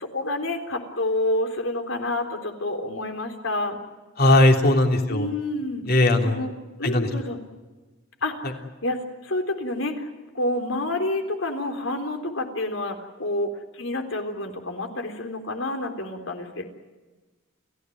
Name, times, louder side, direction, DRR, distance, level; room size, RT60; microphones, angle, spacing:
voice 1, 0.0-3.8 5.1-6.5 6.8-7.4 8.2-10.1 10.3-16.6, left 1 dB, 75° left, 6 dB, 3.7 m, -29 dB
voice 2, 4.2-5.3 5.9-6.4 6.8-7.1, left 1 dB, 50° left, 4 dB, 3.3 m, -18 dB
30.0 x 16.0 x 9.4 m, 1.2 s
head